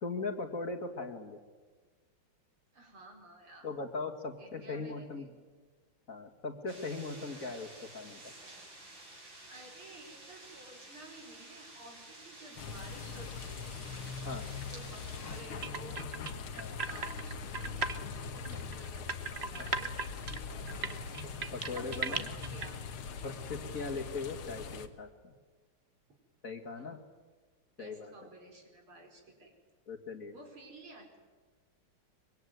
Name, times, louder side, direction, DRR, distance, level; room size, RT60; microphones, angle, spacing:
voice 1, 0.0-1.4 3.6-5.3 6.1-7.7 7.9-8.2 14.2-14.4 16.6-16.8 18.6-18.7 21.5-22.2 23.2-25.3 26.4-27.0 27.8-28.1 29.9-30.3, left 3 dB, 40° left, 5 dB, 2.2 m, -39 dB
voice 2, 2.7-3.7 4.4-5.4 9.2-13.7 14.7-16.3 16.9-18.0 18.3-21.2 21.7-23.3 26.7-26.9 27.8-29.5 30.3-31.2, right 2 dB, 80° right, 2 dB, 5.7 m, -53 dB
sound 1, 6.7-15.4, right 2 dB, 65° right, 5.8 m, -52 dB
sound 2, 12.6-24.9, left 5 dB, 85° left, 2.2 m, -42 dB
sound 3, 15.6-18.0 18.3-22.7, right 5 dB, 35° right, 1.3 m, -37 dB
24.5 x 23.0 x 9.4 m, 1.4 s
omnidirectional pair, 2.3 m